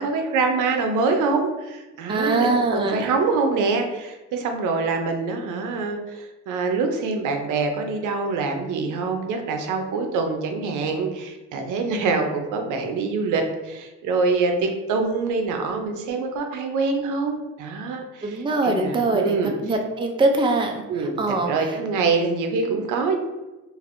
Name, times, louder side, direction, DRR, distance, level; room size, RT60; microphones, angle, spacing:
voice 1, 0.0-19.6 20.9-23.2, right 4 dB, 85° right, 4 dB, 0.6 m, -25 dB
voice 2, 2.1-3.1 18.2-20.8 21.2-21.5, right 2 dB, 15° right, 2 dB, 0.4 m, -22 dB
3.2 x 2.5 x 2.5 m, 1.1 s
cardioid pair, 90°, 30 cm